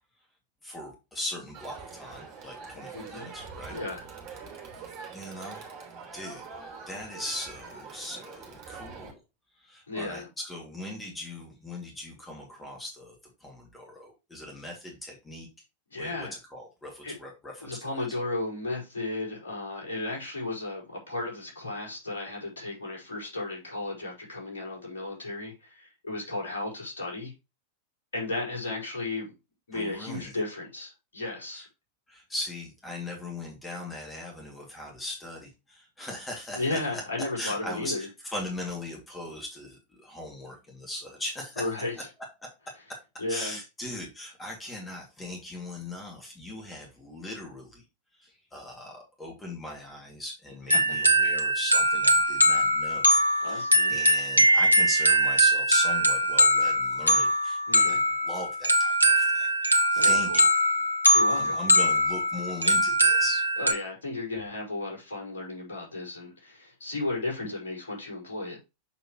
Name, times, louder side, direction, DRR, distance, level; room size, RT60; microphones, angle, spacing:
voice 1, 0.6-3.8 4.8-5.6 6.1-6.4 6.9-9.2 9.6-13.1 13.4-15.5 16.0-18.1 29.7-30.3 31.5-31.7 32.1-37.0 37.4-41.7 42.4-42.5 43.3-47.8 48.2-60.5 61.3-63.4, left 1 dB, 10° left, 2.5 m, -39 dB
Crowd, 1.5-9.1, right 5 dB, 35° right, 3.0 m, -44 dB
voice 2, 2.9-3.3 3.7-4.0 9.9-10.3 15.9-16.3 17.0-17.1 17.6-27.3 28.1-29.3 29.7-31.6 36.5-38.1 41.6-42.1 43.2-43.6 50.7-50.8 53.4-53.9 57.7-58.0 59.9-60.5 61.1-61.5 63.6-68.6, left 2 dB, 65° left, 5.0 m, -34 dB
sound 1, 50.7-63.7, equal, 90° right, 0.9 m, -22 dB
7.1 x 6.2 x 3.1 m
figure-of-eight pair, 90°, 0 cm